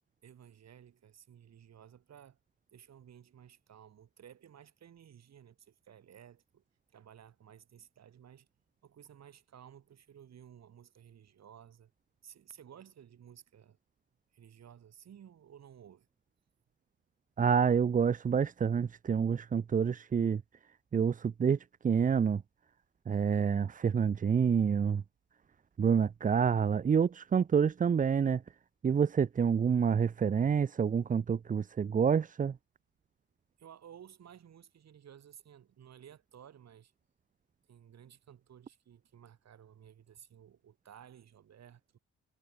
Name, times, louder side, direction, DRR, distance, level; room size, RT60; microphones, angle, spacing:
voice 1, 0.2-2.4 2.7-6.6 6.9-8.5 8.8-11.9 12.2-13.8 14.3-16.1 33.6-36.9 37.7-42.0, right 9 dB, 60° right, 5.3 m, -55 dB
voice 2, 17.4-20.4 20.9-21.6 21.8-22.4 23.1-25.0 25.8-28.4 28.8-32.5, right 7 dB, 25° right, 0.5 m, -28 dB
cardioid pair, 90°, 30 cm